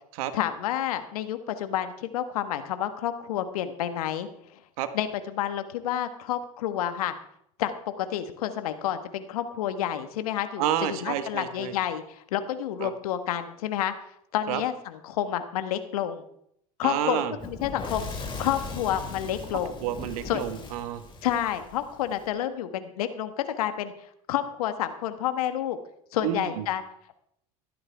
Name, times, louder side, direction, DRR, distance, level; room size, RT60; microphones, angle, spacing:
voice 1, 0.3-4.3 4.9-7.1 7.6-13.9 14.3-16.2 16.8-19.8 20.2-20.4 21.2-23.9 24.3-25.8 26.1-26.8, left 11 dB, 75° left, 9 dB, 1.4 m, -29 dB
voice 2, 10.6-11.7 12.8-12.9 14.5-14.6 16.8-17.3 19.8-21.0 26.2-26.5, right 11 dB, 70° right, 10 dB, 1.5 m, -29 dB
Fire / Explosion, 17.4-22.2, left 3 dB, 25° left, 6.3 m, -39 dB
16.0 x 13.0 x 3.5 m, 0.70 s
hypercardioid pair, 80°, 19 cm